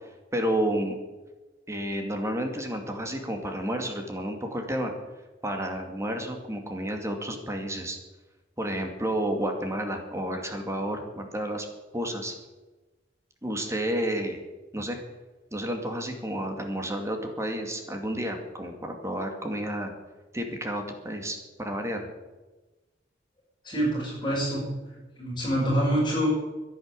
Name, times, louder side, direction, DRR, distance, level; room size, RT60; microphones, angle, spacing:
voice 1, 0.3-1.0 1.7-4.9 5.4-8.0 8.6-11.7 11.9-12.3 13.4-14.4 14.7-15.0 15.5-19.9 20.3-22.1, right 1 dB, 15° right, 4 dB, 2.3 m, -31 dB
voice 2, 23.6-24.7 25.2-26.3, right 1 dB, 25° left, -9 dB, 6.5 m, -26 dB
11.5 x 11.0 x 9.9 m, 1.2 s
head